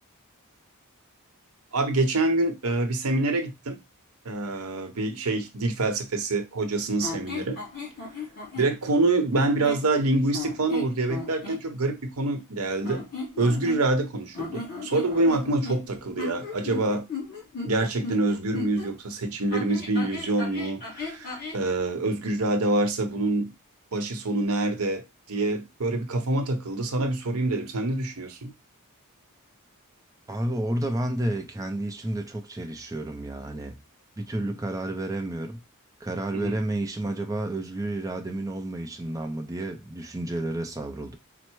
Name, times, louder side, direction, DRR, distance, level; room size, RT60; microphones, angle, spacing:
voice 1, 1.7-3.8 4.2-7.6 8.6-13.0 13.4-17.1 17.6-23.5 23.9-25.0 25.3-28.5 36.3-36.5, right 2 dB, 80° right, 0.9 m, -26 dB
sound 1, 7.0-8.7 9.3-9.9 10.3-11.6 12.8-14.0 14.3-18.9 19.5-21.6, left 3 dB, 45° left, 2.7 m, -36 dB
voice 2, 30.3-33.8 34.2-35.6 36.0-41.2, right 1 dB, 15° right, 0.5 m, -31 dB
4.4 x 2.0 x 4.5 m
head